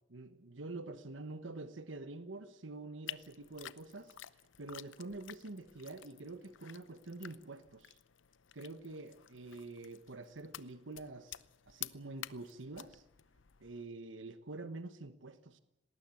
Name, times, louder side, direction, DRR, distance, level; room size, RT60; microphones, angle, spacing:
voice 1, 0.1-8.0 8.5-13.0 13.6-15.6, right 2 dB, 85° right, 11 dB, 1.2 m, -47 dB
sound 1, 3.1-13.9, left 12 dB, 90° left, 0.7 m, -51 dB
19.0 x 19.0 x 9.6 m, 0.87 s
head